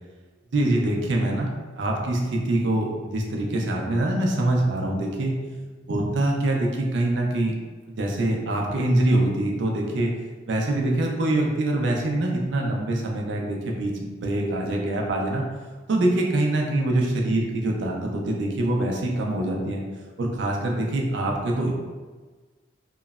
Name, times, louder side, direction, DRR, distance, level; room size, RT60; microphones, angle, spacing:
voice 1, 0.5-1.5 1.8-5.3 5.9-7.5 7.9-10.1 10.5-15.4 15.9-19.8 20.2-21.7, right 1 dB, 70° right, 0 dB, 0.4 m, -24 dB
2.9 x 2.0 x 2.3 m, 1.3 s
head